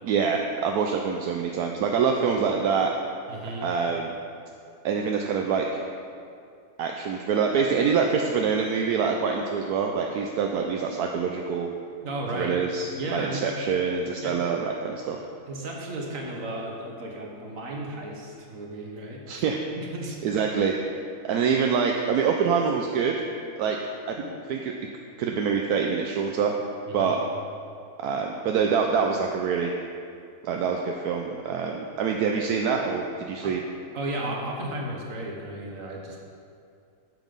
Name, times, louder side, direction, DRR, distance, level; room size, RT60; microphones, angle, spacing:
voice 1, 0.0-2.9 3.6-4.1 4.8-5.7 6.8-11.7 12.3-15.2 19.3-19.6 20.2-20.7 21.2-23.3 23.6-23.8 24.1-24.2 24.5-24.7 25.2-26.5 26.9-27.2 28.0-29.7 30.4-33.6, right 6 dB, 80° right, 1 dB, 1.2 m, -25 dB
voice 2, 3.3-3.7 12.0-12.6 12.9-13.5 14.2-14.4 15.5-19.4 19.8-20.4 26.9-27.1 33.4-33.5 33.9-36.2, right 1 dB, 60° right, -1 dB, 1.7 m, -34 dB
9.0 x 7.4 x 5.4 m, 2.5 s
omnidirectional pair, 1.6 m